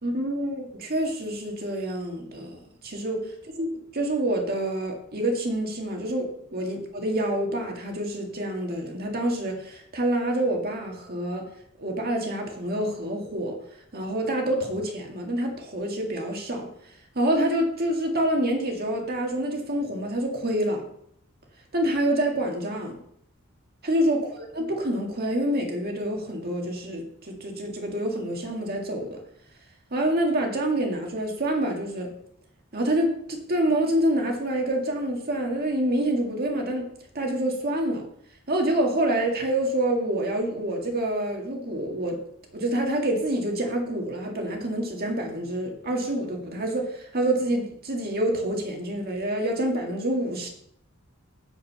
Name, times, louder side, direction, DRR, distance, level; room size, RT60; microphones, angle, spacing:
voice 1, 0.0-3.2 3.6-3.7 3.9-11.5 11.8-13.6 13.9-16.7 17.2-20.8 21.7-22.9 23.8-29.2 29.9-32.1 32.7-36.9 37.1-38.0 38.5-42.2 42.5-50.5, right 1 dB, 45° right, 1 dB, 1.9 m, -27 dB
7.8 x 7.5 x 5.5 m, 0.70 s
head